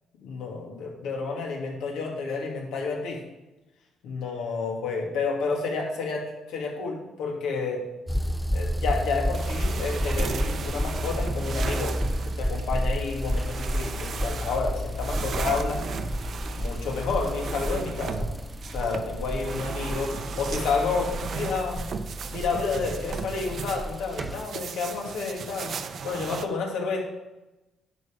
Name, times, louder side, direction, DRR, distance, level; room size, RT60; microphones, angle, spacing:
voice 1, 0.2-3.2 4.0-7.8 8.5-12.0 12.4-15.8 16.5-18.3 18.7-21.9 22.3-25.7 26.0-27.0, left 4 dB, 90° left, 0 dB, 2.2 m, -30 dB
sound 1, 8.1-24.4, equal, 5° left, 0.5 m, -31 dB
sound 2, 9.3-26.5, right 6 dB, 55° right, 0.7 m, -36 dB
11.0 x 5.5 x 5.1 m, 1.0 s
cardioid pair, 90°, 0 cm